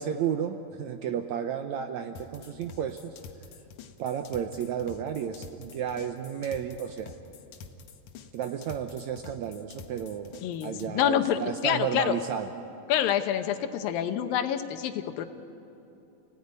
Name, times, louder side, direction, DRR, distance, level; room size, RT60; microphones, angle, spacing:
voice 1, 0.0-3.2 4.0-7.1 8.3-12.5, right 8 dB, 75° right, 7 dB, 1.7 m, -32 dB
sound 1, 2.2-10.9, left 5 dB, 65° left, 2.4 m, -47 dB
voice 2, 10.4-12.2 12.9-15.3, left 10 dB, 80° left, 8 dB, 2.8 m, -27 dB
29.5 x 18.0 x 9.7 m, 2.9 s
omnidirectional pair, 4.1 m